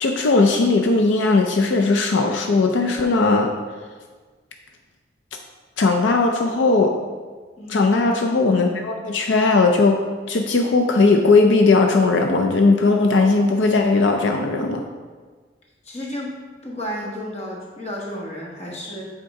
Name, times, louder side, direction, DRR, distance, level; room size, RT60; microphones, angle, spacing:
voice 1, 0.0-3.5 5.8-6.9 7.7-10.0 10.3-14.9, left 3 dB, 80° left, 3 dB, 0.5 m, -18 dB
voice 2, 7.6-8.0 15.8-16.3 16.6-19.1, equal, 35° left, -3 dB, 1.2 m, -32 dB
7.7 x 3.7 x 4.7 m, 1.5 s
head